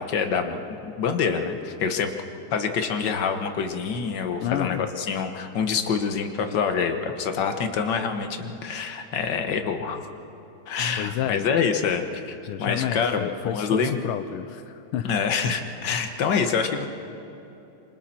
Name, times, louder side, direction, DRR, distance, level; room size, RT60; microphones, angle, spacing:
voice 1, 0.0-2.1 2.5-10.0 10.7-14.0 15.0-16.9, left 6 dB, 55° left, 6 dB, 1.9 m, -26 dB
voice 2, 4.4-4.9 11.0-11.5 12.4-15.1, left 11 dB, 85° left, 10 dB, 1.5 m, -30 dB
27.0 x 26.5 x 4.4 m, 2.9 s
omnidirectional pair, 2.4 m